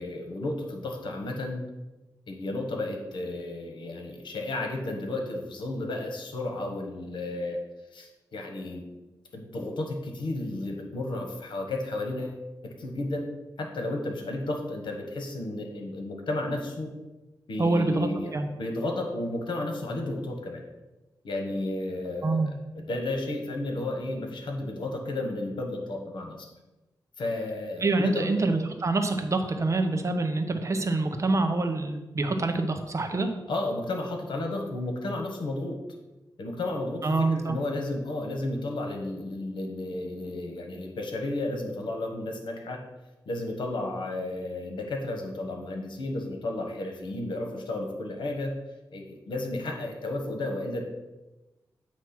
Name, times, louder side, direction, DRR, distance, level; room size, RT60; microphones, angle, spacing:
voice 1, 0.0-1.6 2.3-7.6 7.9-8.8 9.3-13.2 13.6-16.9 17.5-20.6 21.2-22.4 22.9-26.5 27.2-28.4 33.5-35.8 36.4-42.8 43.3-48.5 48.9-50.8, left 2 dB, 85° left, 3 dB, 1.2 m, -33 dB
voice 2, 17.6-18.5 22.2-22.5 27.8-33.3 37.0-37.6, right 2 dB, 40° right, 6 dB, 0.8 m, -26 dB
8.2 x 3.1 x 5.9 m, 1.1 s
wide cardioid pair, 100°, 8 cm